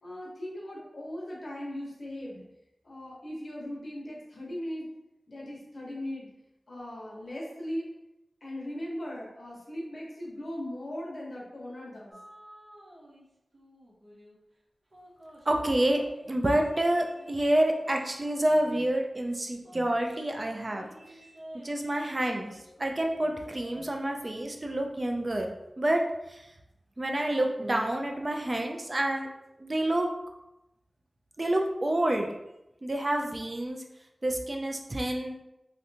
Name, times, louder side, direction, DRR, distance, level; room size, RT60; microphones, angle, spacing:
voice 1, 0.0-2.4 2.8-4.9 5.3-6.3 6.7-7.9 8.4-12.2, left 1 dB, 65° left, -5 dB, 1.1 m, -38 dB
sound 1, 12.1-13.3 13.5-14.4 14.9-19.1 19.6-23.0 23.3-24.1, equal, 55° right, 1.0 m, -52 dB
voice 2, 15.5-21.3 21.6-22.5 22.8-25.5 25.8-26.5 27.0-29.3 29.6-30.4 31.4-32.3 32.8-33.8 34.2-35.3, right 1 dB, 35° right, 2 dB, 0.4 m, -28 dB
3.1 x 2.8 x 2.7 m, 0.90 s
wide cardioid pair, 90°, 0 cm